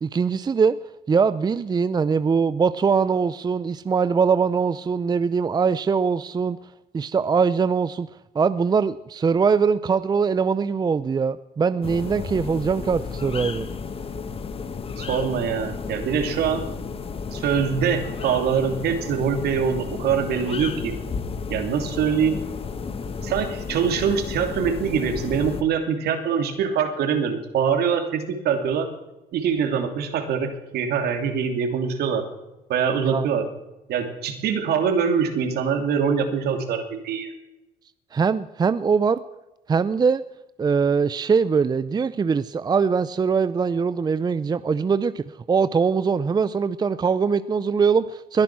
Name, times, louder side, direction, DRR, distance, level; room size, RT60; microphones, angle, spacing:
voice 1, 0.0-0.8 1.1-6.6 6.9-8.1 8.3-13.7 33.0-33.3 38.1-39.2 39.7-40.2 40.6-48.4, right 5 dB, 25° right, 14 dB, 0.5 m, -22 dB
sound 1, 11.8-25.6, left 5 dB, 35° left, 1.2 m, -33 dB
voice 2, 15.0-16.6 17.3-20.9 21.5-22.4 23.2-28.9 29.3-32.2 32.7-33.5 33.9-37.3, right 7 dB, 70° right, 6 dB, 2.8 m, -24 dB
21.5 x 10.5 x 6.1 m, 0.98 s
cardioid pair, 110°, 17 cm